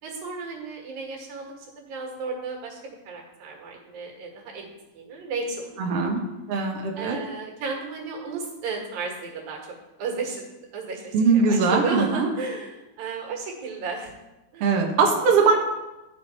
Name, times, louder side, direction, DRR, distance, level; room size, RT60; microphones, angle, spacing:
voice 1, 0.0-4.7 5.0-6.1 7.0-9.6 10.0-14.2 14.5-14.7, right 4 dB, 85° right, 0 dB, 3.4 m, -33 dB
voice 2, 5.8-6.2 6.5-7.2 11.1-12.3 14.6-15.5, right 4 dB, 60° right, 0 dB, 1.7 m, -21 dB
12.0 x 6.3 x 4.2 m, 1.0 s
omnidirectional pair, 4.0 m